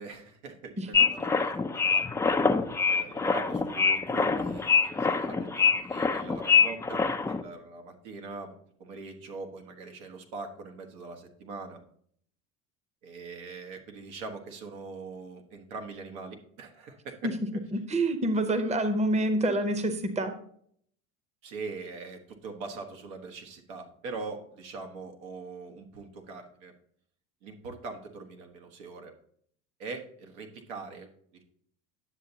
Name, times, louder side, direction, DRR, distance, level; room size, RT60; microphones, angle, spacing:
voice 1, 0.0-2.0 2.9-11.8 13.0-17.6 21.4-26.7 27.4-29.1 29.8-31.1, right 4 dB, 75° right, 3 dB, 1.3 m, -42 dB
sound 1, 0.9-7.4, left 5 dB, 5° left, 0.4 m, -25 dB
voice 2, 17.7-20.3, right 1 dB, 15° right, 9 dB, 0.9 m, -27 dB
9.8 x 6.9 x 2.8 m, 0.63 s
hypercardioid pair, 85°, 42 cm